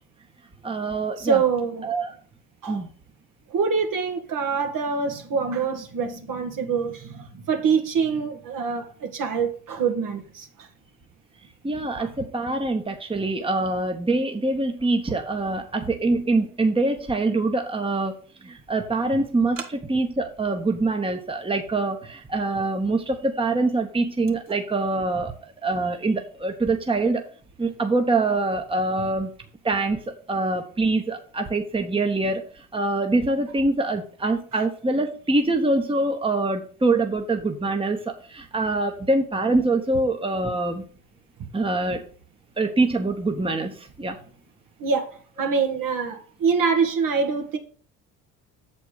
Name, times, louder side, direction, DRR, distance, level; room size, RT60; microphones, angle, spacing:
voice 1, 0.6-1.4 1.8-2.1 2.7-2.9 11.6-18.1 18.4-27.2 27.6-29.3 29.6-40.8 41.5-42.0 42.6-44.2, right 2 dB, 15° right, 1.3 m, -24 dB
voice 2, 1.2-1.9 2.6-2.8 3.5-10.7 12.0-12.1 34.5-34.6 44.8-47.6, right 5 dB, 50° right, 1.7 m, -25 dB
7.1 x 4.5 x 6.4 m
hypercardioid pair, 65°, 41 cm